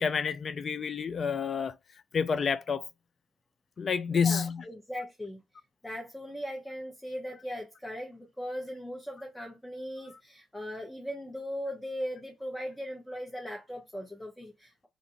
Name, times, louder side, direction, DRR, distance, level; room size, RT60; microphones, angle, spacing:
voice 1, 0.0-1.7 2.1-2.9 3.8-4.6, left 6 dB, 45° left, 0.3 m, -29 dB
voice 2, 4.1-5.4 5.8-14.9, equal, 10° left, 0.8 m, -39 dB
2.6 x 2.4 x 2.8 m
hypercardioid pair, 45°, 0 cm